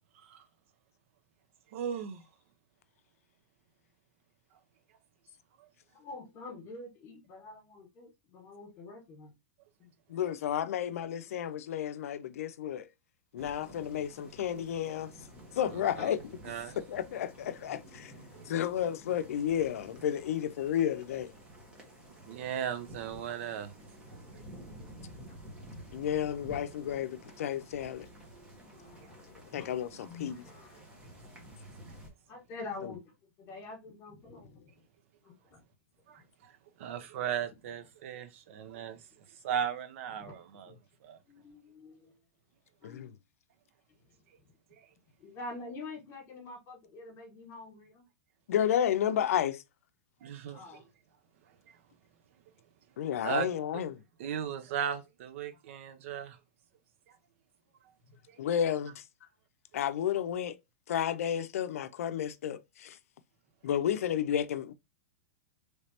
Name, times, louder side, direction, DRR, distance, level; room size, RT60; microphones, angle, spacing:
voice 1, 0.1-0.5 1.7-2.2 5.6-5.7 15.7-16.1 16.4-16.8 18.3-18.4 22.3-23.7 24.3-24.4 36.1-40.7 41.0-41.2 44.8-44.9 50.2-50.6 53.2-53.5 54.2-56.4 57.1-57.2 58.3-58.4, right 8 dB, 60° right, 0.7 m, -37 dB
voice 2, 5.9-9.3 9.8-9.9 18.3-18.4 22.8-22.9 25.3-25.4 28.5-29.7 30.0-31.4 32.3-34.8 35.2-35.6 36.2-36.3 40.2-40.8 41.2-42.2 42.8-43.2 44.1-44.2 45.2-48.0 50.5-50.9 58.1-58.2, left 3 dB, 35° left, 1.7 m, -47 dB
voice 3, 10.1-12.9 13.3-15.1 15.5-16.4 16.9-18.1 18.5-21.3 25.9-28.1 29.5-30.4 42.8-43.1 48.5-49.6 53.0-54.0 58.4-59.0 59.7-60.5 60.9-63.0 63.6-64.7, left 10 dB, 75° left, 0.5 m, -32 dB
sound 1, 13.4-32.1, right 1 dB, 15° right, 1.2 m, -51 dB
3.2 x 3.2 x 2.8 m
hypercardioid pair, 140°, 8 cm